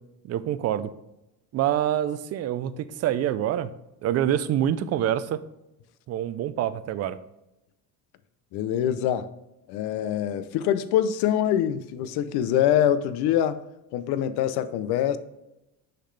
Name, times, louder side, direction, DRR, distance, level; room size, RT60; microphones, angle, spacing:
voice 1, 0.2-0.9 1.5-3.7 4.0-5.4 6.1-7.2, right 11 dB, 40° right, 14 dB, 0.4 m, -26 dB
voice 2, 8.5-9.3 9.7-13.6 13.9-15.2, left 10 dB, 80° left, 13 dB, 0.6 m, -24 dB
6.6 x 5.8 x 3.2 m, 0.91 s
cardioid pair, 145°, 38 cm